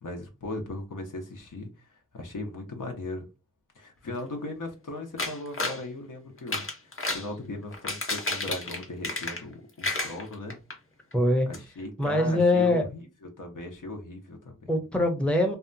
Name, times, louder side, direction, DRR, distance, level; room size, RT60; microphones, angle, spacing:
voice 1, 0.0-3.3 3.7-10.6 11.5-14.7, left 2 dB, 75° left, 0.7 m, -38 dB
sound 1, 5.2-5.8 6.4-7.3 7.7-9.5 9.8-10.7 11.1-11.2 11.5-11.6, left 2 dB, 40° left, 0.7 m, -31 dB
voice 2, 11.1-11.5 12.0-12.8 14.7-15.6, left 1 dB, 5° left, 0.6 m, -23 dB
2.7 x 2.2 x 2.5 m
wide cardioid pair, 70°, 32 cm